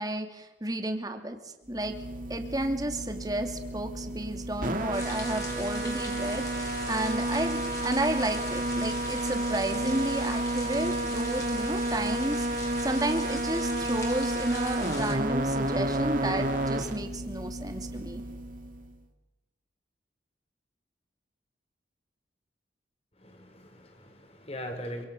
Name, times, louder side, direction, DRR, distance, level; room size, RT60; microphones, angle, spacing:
voice 1, 0.0-1.9 2.3-18.2, right 1 dB, 20° right, 6 dB, 2.6 m, -32 dB
sound 1, 1.7-18.9, right 1 dB, 50° right, 2.8 m, -31 dB
sound 2, 4.9-15.1, left 2 dB, 20° left, 4.5 m, -41 dB
voice 2, 23.2-25.0, equal, 35° left, 5 dB, 4.7 m, -40 dB
27.0 x 25.5 x 6.9 m, 1.1 s
head